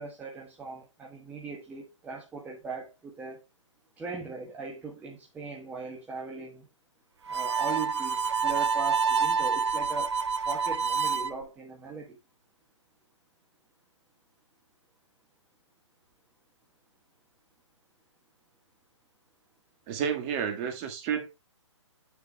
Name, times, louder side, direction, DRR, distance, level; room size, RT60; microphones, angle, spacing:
voice 1, 0.0-3.4 4.0-6.7 7.3-10.2 10.4-12.2, right 4 dB, 10° right, 1.2 m, -39 dB
Harmonica, 7.3-11.3, right 5 dB, 60° right, 0.9 m, -27 dB
voice 2, 19.9-21.3, right 7 dB, 30° right, 1.8 m, -30 dB
9.2 x 7.0 x 2.2 m
figure-of-eight pair, 130°, 16 cm